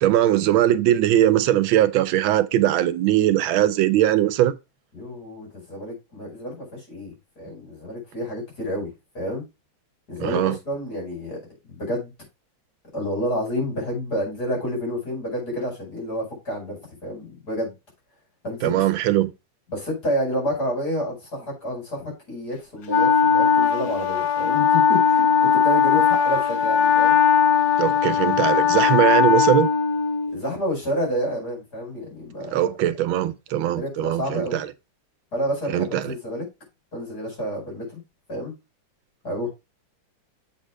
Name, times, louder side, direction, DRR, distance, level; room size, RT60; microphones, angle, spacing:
voice 1, 0.0-4.5 10.2-10.6 18.6-19.3 27.8-29.7 32.4-34.7 35.7-36.1, right 12 dB, 85° right, 1.5 m, -20 dB
voice 2, 4.9-9.5 10.1-11.4 11.6-12.1 12.9-17.7 18.4-18.8 19.7-27.2 30.3-32.6 33.7-34.6 35.3-36.5 36.9-38.0 38.3-38.5 39.2-39.5, equal, 50° left, 5.5 m, -29 dB
Wind instrument woodwind instrument, 22.9-30.4, left 7 dB, 70° left, 1.5 m, -19 dB
7.4 x 4.5 x 4.5 m
omnidirectional pair, 2.1 m